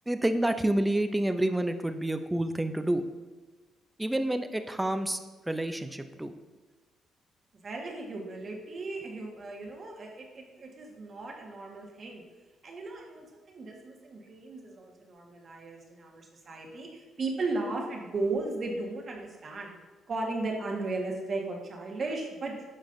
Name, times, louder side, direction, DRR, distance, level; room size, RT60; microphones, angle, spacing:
voice 1, 0.1-3.0 4.0-5.2 5.5-6.3, right 1 dB, 10° right, 9 dB, 0.5 m, -28 dB
voice 2, 7.6-12.2 12.6-19.8 20.1-22.6, right 3 dB, 45° right, 0 dB, 1.4 m, -36 dB
9.0 x 5.3 x 2.6 m, 1.3 s
cardioid pair, 90°, 0 cm